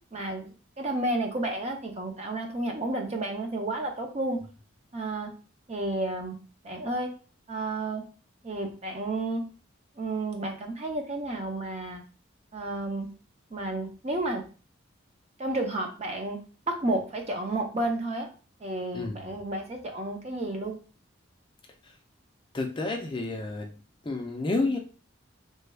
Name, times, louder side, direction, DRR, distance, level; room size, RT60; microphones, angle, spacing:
voice 1, 0.1-4.4 4.9-5.3 5.7-6.4 6.6-7.1 7.5-8.0 8.4-9.4 10.0-12.0 12.5-13.1 13.5-14.4 15.4-16.4 16.7-18.3 18.6-20.8, right 2 dB, 30° right, 2 dB, 0.5 m, -31 dB
voice 2, 18.9-19.3 21.8-21.9 22.5-23.8 24.0-24.8, left 2 dB, 25° left, 2 dB, 0.4 m, -30 dB
3.2 x 2.2 x 3.3 m, 0.37 s
head